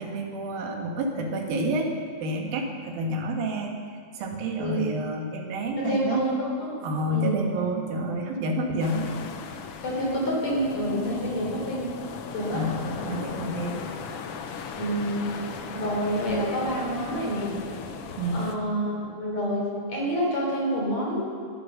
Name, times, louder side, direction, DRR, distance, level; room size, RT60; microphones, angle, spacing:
voice 1, 0.0-1.9 2.2-3.8 4.1-6.2 6.8-9.2 12.5-12.8 13.0-13.9 18.2-18.5, right 1 dB, 90° right, 2 dB, 3.4 m, -29 dB
voice 2, 5.8-6.7 7.1-7.4 9.8-11.9 12.3-12.7 14.8-15.2 15.7-17.6 18.3-21.3, equal, 50° left, -3 dB, 4.6 m, -28 dB
sound 1, 8.8-18.6, left 6 dB, 85° left, 1.3 m, -37 dB
19.5 x 11.0 x 6.6 m, 2.1 s
omnidirectional pair, 4.0 m